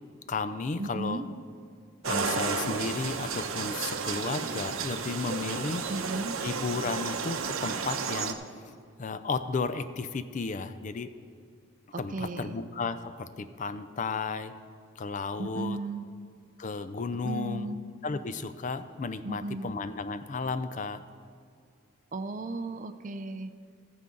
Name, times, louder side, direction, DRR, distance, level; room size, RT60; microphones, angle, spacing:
voice 1, 0.3-1.2 2.0-5.9 6.4-8.4 9.0-11.1 12.0-14.5 15.0-15.8 16.6-17.8 18.0-21.0, left 4 dB, 35° left, 12 dB, 0.4 m, -33 dB
voice 2, 0.8-1.3 5.9-6.3 11.9-12.6 15.4-16.0 17.2-17.8 19.2-19.7 22.1-23.5, right 2 dB, 40° right, 10 dB, 0.5 m, -35 dB
sound 1, 2.0-8.3, right 5 dB, 80° right, 0.7 m, -32 dB
14.5 x 9.4 x 3.8 m, 2.3 s
head